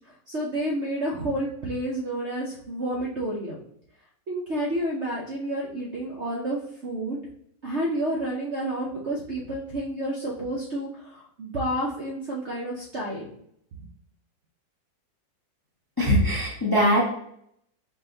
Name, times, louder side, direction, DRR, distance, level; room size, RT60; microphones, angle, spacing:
voice 1, 0.3-3.6 4.3-7.2 7.6-13.3 13.7-13.9, right 1 dB, 55° right, -3 dB, 0.8 m, -30 dB
voice 2, 16.0-17.0, equal, 20° left, -4 dB, 0.7 m, -21 dB
5.1 x 2.5 x 3.8 m, 0.71 s
omnidirectional pair, 2.0 m